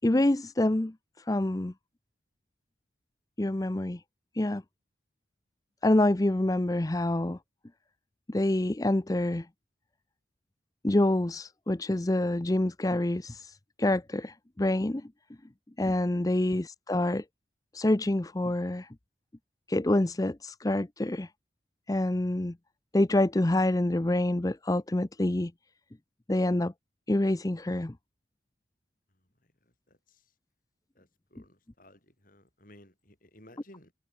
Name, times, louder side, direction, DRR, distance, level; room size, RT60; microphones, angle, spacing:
voice 1, 0.0-1.7 3.4-4.0 4.3-4.6 5.8-7.4 8.3-9.5 10.8-15.1 15.8-17.2 17.7-18.9 19.7-21.3 21.9-22.6 22.9-25.5 26.3-26.7 27.1-27.9, left 1 dB, 20° left, 0.5 m, -27 dB
voice 2, 29.4-30.3 30.9-33.9, left 1 dB, 45° left, 6.6 m, -57 dB
head